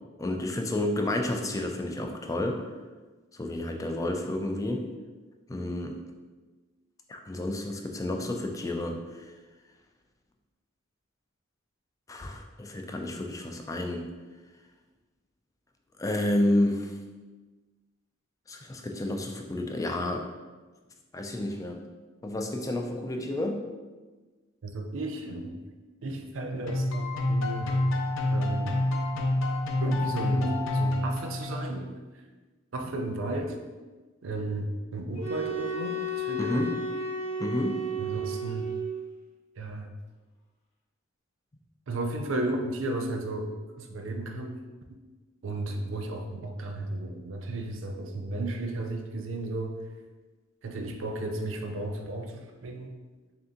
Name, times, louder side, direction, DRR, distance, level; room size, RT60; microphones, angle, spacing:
voice 1, 0.2-2.7 3.3-4.9 5.5-6.0 7.1-9.3 12.1-14.1 16.0-17.0 18.5-20.3 21.1-21.8 22.2-23.6 36.4-36.8 37.4-37.8, left 1 dB, 15° left, 3 dB, 0.3 m, -30 dB
voice 2, 24.6-25.6 26.0-28.0 28.3-28.8 29.1-29.3 29.8-31.9 32.7-33.6 34.2-36.7 38.0-38.7 39.6-39.9 41.9-44.6 45.4-49.8 50.6-53.0, right 2 dB, 80° right, 4 dB, 0.5 m, -34 dB
sound 1, 26.7-31.9, left 1 dB, 80° left, 0.5 m, -28 dB
sound 2, 35.2-39.1, right 1 dB, 35° left, 0.7 m, -33 dB
3.4 x 2.7 x 3.7 m, 1.3 s
head